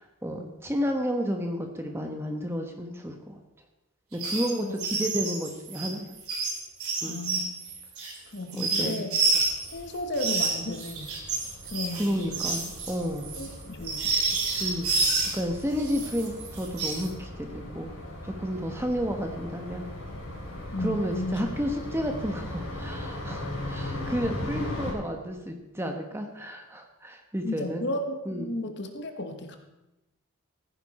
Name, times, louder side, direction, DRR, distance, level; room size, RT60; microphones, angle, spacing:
voice 1, 0.0-3.4 4.1-6.1 7.0-7.2 8.5-9.0 11.9-13.3 14.6-17.9 18.2-19.9 20.8-27.9 28.2-28.6, equal, 10° right, 3 dB, 1.1 m, -31 dB
sound 1, 4.1-4.5 4.8-9.7 10.1-15.4 15.8-17.1, right 3 dB, 80° right, 3.3 m, -29 dB
voice 2, 7.0-7.5 8.3-9.2 9.7-11.1 11.7-12.4 13.4-14.1 20.7-21.4 27.4-29.6, left 1 dB, 50° left, 6 dB, 1.3 m, -34 dB
sound 2, 9.3-24.9, left 1 dB, 75° left, 4.0 m, -39 dB
15.0 x 9.8 x 4.2 m, 0.99 s
head